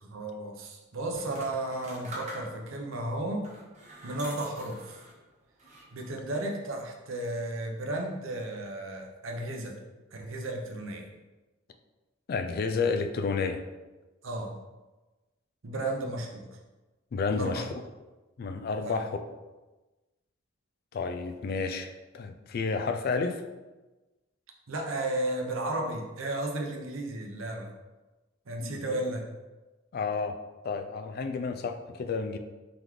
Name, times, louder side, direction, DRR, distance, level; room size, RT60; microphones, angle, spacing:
voice 1, 0.0-3.5 4.0-5.0 5.9-9.8 10.1-11.1 14.2-14.6 15.6-16.5 17.3-17.6 18.8-19.0 24.7-27.7 28.5-29.2, right 1 dB, 80° right, 2 dB, 0.7 m, -34 dB
sound 1, 1.1-2.8 3.4-5.2 5.6-6.2, right 1 dB, 35° right, 0.8 m, -45 dB
voice 2, 12.3-13.6 17.1-17.7 18.4-19.3 20.9-23.4 28.6-29.0 29.9-30.4 30.6-32.4, left 4 dB, 50° left, 7 dB, 0.3 m, -31 dB
3.8 x 3.5 x 3.1 m, 1.2 s
head